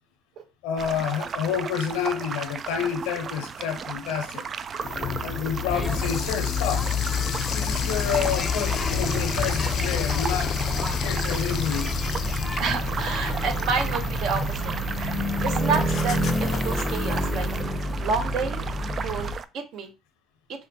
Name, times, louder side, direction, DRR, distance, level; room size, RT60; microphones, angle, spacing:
voice 1, 0.6-4.4 5.2-6.9 7.5-10.5 11.0-11.9, left 8 dB, 85° left, 0.9 m, -29 dB
sound 1, 0.8-19.4, right 6 dB, 40° right, 0.3 m, -35 dB
sound 2, 4.8-17.6, left 9 dB, 55° left, 0.5 m, -31 dB
sound 3, 5.7-19.3, left 1 dB, 10° left, 0.7 m, -29 dB
voice 2, 12.6-15.2 15.4-17.5 18.0-18.6 19.0-19.9, right 5 dB, 60° right, 0.9 m, -29 dB
4.8 x 2.1 x 2.8 m
supercardioid pair, 80°, 0 cm